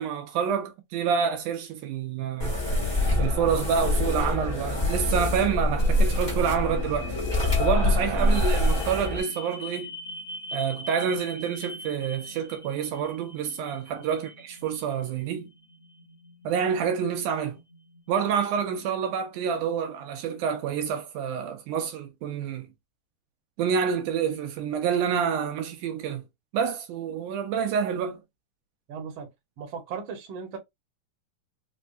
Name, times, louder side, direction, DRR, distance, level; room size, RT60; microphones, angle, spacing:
voice 1, 0.0-2.6 3.2-7.2 7.6-10.0 10.5-15.5 16.5-17.6 18.1-22.7 23.6-26.2 26.5-28.2, right 7 dB, 80° right, 2.1 m, -28 dB
sound 1, 2.3-20.4, left 2 dB, 85° left, 0.4 m, -45 dB
sound 2, 2.4-9.2, left 1 dB, 15° left, 0.8 m, -25 dB
voice 2, 28.9-29.3 29.6-30.6, right 6 dB, 55° right, 1.5 m, -37 dB
5.2 x 2.2 x 2.5 m
omnidirectional pair, 3.8 m